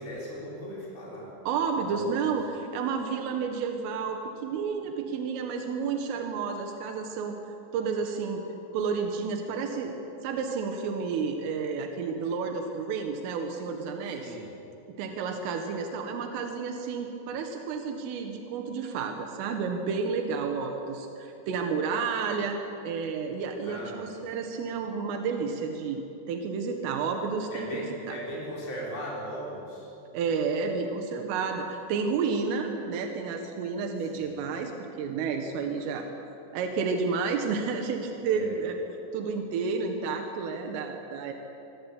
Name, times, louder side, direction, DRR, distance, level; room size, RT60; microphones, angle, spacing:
voice 1, 0.0-1.4 1.9-2.1 14.1-14.5 23.6-24.0 27.5-29.9 34.0-34.4 38.3-38.6, equal, 25° left, -5 dB, 6.7 m, -38 dB
voice 2, 1.5-7.4 7.7-8.4 8.7-10.0 10.2-14.4 15.0-22.6 22.8-27.7 28.1-28.2 30.1-34.7 35.0-36.1 36.5-38.8 39.1-41.3, right 5 dB, 85° right, 4 dB, 4.3 m, -31 dB
25.0 x 24.0 x 8.5 m, 2.9 s
omnidirectional pair, 5.7 m